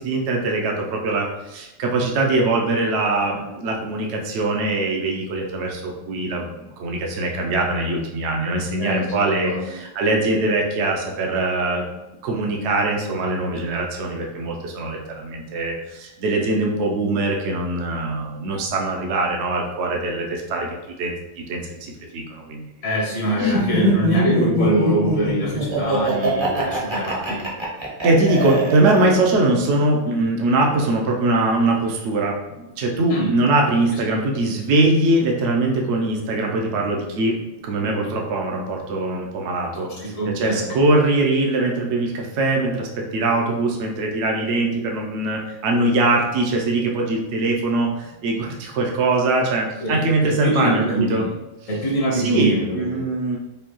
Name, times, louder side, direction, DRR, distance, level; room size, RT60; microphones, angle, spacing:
voice 1, 0.0-11.8 12.2-22.6 23.4-23.5 28.0-37.4 37.6-51.2 52.1-53.4, right 2 dB, 70° right, 0 dB, 0.9 m, -22 dB
voice 2, 8.8-9.7 22.8-27.5 33.1-33.3 33.9-34.0 39.7-40.9 49.8-51.3 51.7-53.1, right 1 dB, 75° left, -4 dB, 1.4 m, -24 dB
Laughter, 23.4-29.3, equal, 30° right, 0.6 m, -22 dB
5.2 x 2.2 x 2.9 m, 0.98 s
omnidirectional pair, 1.4 m